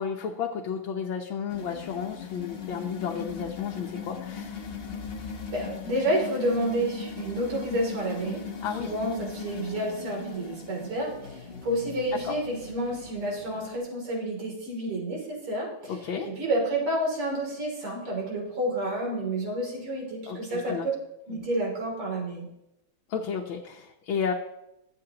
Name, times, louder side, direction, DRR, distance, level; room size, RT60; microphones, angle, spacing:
voice 1, 0.0-4.8 8.6-8.9 12.2-12.3 15.9-16.3 20.3-20.9 23.1-24.3, left 7 dB, 70° left, 0 dB, 1.6 m, -32 dB
sound 1, 1.5-13.8, left 6 dB, 55° left, 0.6 m, -39 dB
voice 2, 5.5-8.4 8.8-15.9 16.2-20.9 21.3-22.5, right 1 dB, 85° right, -2 dB, 3.9 m, -30 dB
22.0 x 7.7 x 2.9 m, 0.87 s
omnidirectional pair, 2.4 m